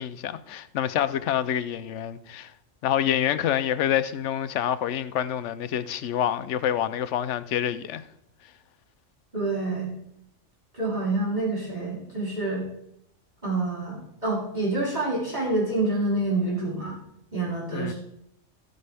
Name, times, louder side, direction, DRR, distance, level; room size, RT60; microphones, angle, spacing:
voice 1, 0.0-2.5 2.8-8.0 17.7-17.9, left 10 dB, 70° left, 0.9 m, -27 dB
voice 2, 9.3-9.9 10.7-12.6 13.4-16.9 17.3-17.9, right 2 dB, 35° right, 3.9 m, -27 dB
13.5 x 9.6 x 3.4 m
omnidirectional pair, 1.3 m